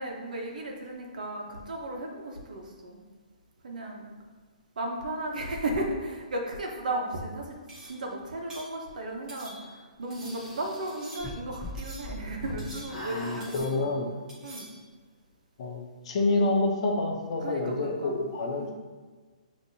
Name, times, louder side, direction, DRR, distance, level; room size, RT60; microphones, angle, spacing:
voice 1, 0.0-3.0 3.6-4.1 4.8-7.6 7.8-14.0 14.4-14.7 17.4-18.2 18.5-18.7, right 1 dB, 80° right, 0 dB, 1.0 m, -35 dB
sound 1, 7.7-8.1 8.5-8.8 9.3-9.8 10.1-10.5 10.9-11.5 11.8-12.2 12.6-13.2 13.4-13.9 14.3-14.8, right 1 dB, 15° right, 1.0 m, -47 dB
sound 2, 10.1-12.6 12.9-13.5, left 2 dB, ahead, 1.0 m, -41 dB
voice 2, 13.1-14.1 15.6-18.7, left 2 dB, 45° left, 2 dB, 0.7 m, -28 dB
6.5 x 2.9 x 2.7 m, 1.4 s
hypercardioid pair, 160°, 4 cm